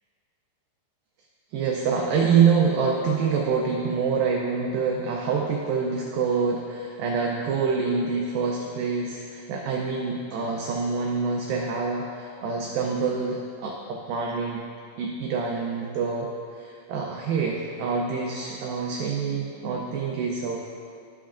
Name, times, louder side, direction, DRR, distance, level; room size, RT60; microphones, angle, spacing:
voice 1, 1.5-14.6 15.0-20.6, right 5 dB, 90° right, -1 dB, 2.0 m, -26 dB
13.5 x 5.8 x 2.5 m, 2.4 s
omnidirectional pair, 4.8 m